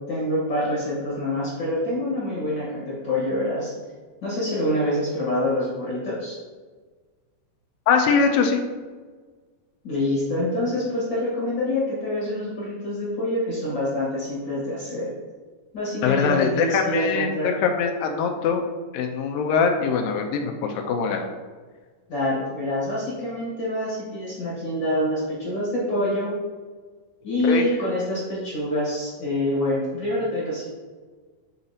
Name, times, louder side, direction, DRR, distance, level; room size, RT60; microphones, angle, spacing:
voice 1, 0.1-3.7 4.2-6.4 9.8-15.1 15.7-17.6 22.1-26.3 27.2-30.7, left 1 dB, 50° left, -7 dB, 1.4 m, -26 dB
voice 2, 7.9-8.6 16.0-18.6 18.9-21.2 27.4-27.7, left 5 dB, 85° left, 4 dB, 2.3 m, -22 dB
8.7 x 3.9 x 2.8 m, 1.4 s
omnidirectional pair, 4.0 m